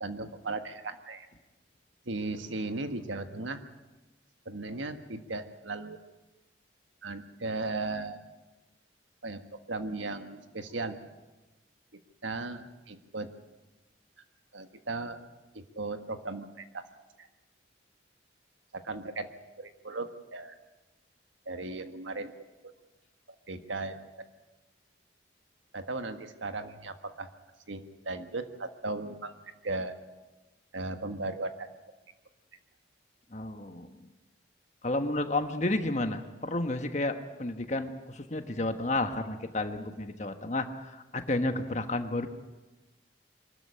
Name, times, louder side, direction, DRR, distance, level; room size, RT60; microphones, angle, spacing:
voice 1, 0.0-1.3 2.0-3.6 4.4-6.0 7.0-8.2 9.2-9.4 9.7-11.0 11.9-13.3 14.5-15.2 15.5-16.8 17.2-17.3 18.7-19.3 19.6-20.6 21.4-22.3 23.5-24.0 25.7-27.3 27.7-29.3 29.6-30.0 30.7-31.7, right 3 dB, 85° right, 8 dB, 1.6 m, -36 dB
voice 2, 33.3-33.9 34.8-42.3, left 2 dB, 40° left, 7 dB, 1.4 m, -31 dB
23.5 x 13.5 x 10.0 m, 1.1 s
head